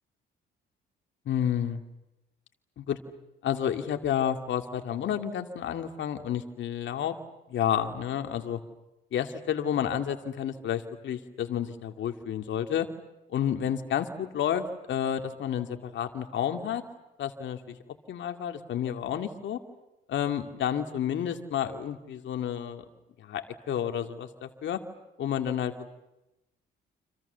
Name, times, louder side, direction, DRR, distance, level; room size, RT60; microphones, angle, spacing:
voice 1, 1.3-1.8 2.8-3.0 3.4-7.2 7.5-8.6 9.1-12.9 13.3-16.8 17.2-17.8 18.1-19.6 20.1-22.8 23.2-24.8 25.2-25.9, left 9 dB, 70° left, 6 dB, 2.5 m, -30 dB
30.0 x 26.5 x 7.0 m, 0.91 s
cardioid pair, 90°, 20 cm